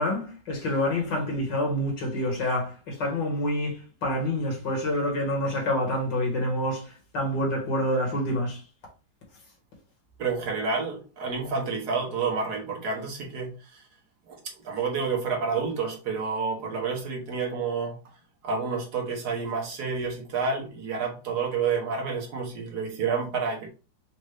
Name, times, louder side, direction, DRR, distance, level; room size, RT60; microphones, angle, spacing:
voice 1, 0.0-8.6, left 1 dB, 70° left, 2.3 m, -27 dB
voice 2, 10.2-13.9 14.3-18.0 18.4-23.7, right 5 dB, 60° right, 1.4 m, -29 dB
5.2 x 2.5 x 3.3 m
omnidirectional pair, 2.0 m